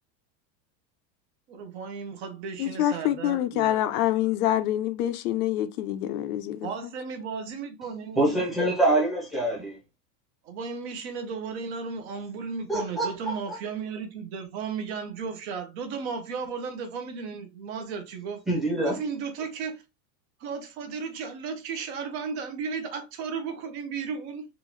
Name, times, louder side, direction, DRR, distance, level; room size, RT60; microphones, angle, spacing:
voice 1, 1.5-3.8 6.6-8.4 10.4-18.4 18.8-19.8 20.4-24.5, right 5 dB, 40° right, 0.7 m, -35 dB
voice 2, 2.6-6.9, left 12 dB, 65° left, 0.5 m, -26 dB
voice 3, 8.2-9.8 12.7-13.6 18.5-18.9, right 2 dB, ahead, 0.7 m, -25 dB
3.7 x 2.5 x 3.0 m
supercardioid pair, 175°, 49 cm